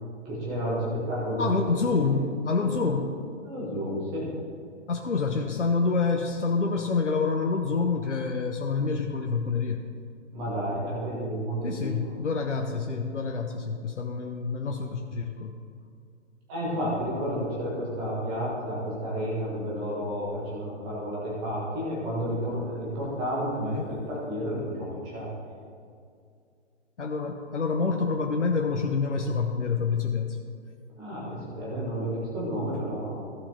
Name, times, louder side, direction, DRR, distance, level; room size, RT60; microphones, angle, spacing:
voice 1, 0.2-1.6 2.0-2.2 2.6-2.9 3.4-4.3 10.3-11.9 16.5-25.3 31.0-33.3, equal, 5° right, -6 dB, 0.4 m, -31 dB
voice 2, 1.4-3.2 4.9-9.8 11.6-15.6 23.6-23.9 27.0-30.4, left 4 dB, 75° left, 3 dB, 0.9 m, -27 dB
14.5 x 5.6 x 3.9 m, 2.3 s
figure-of-eight pair, 130°, 36 cm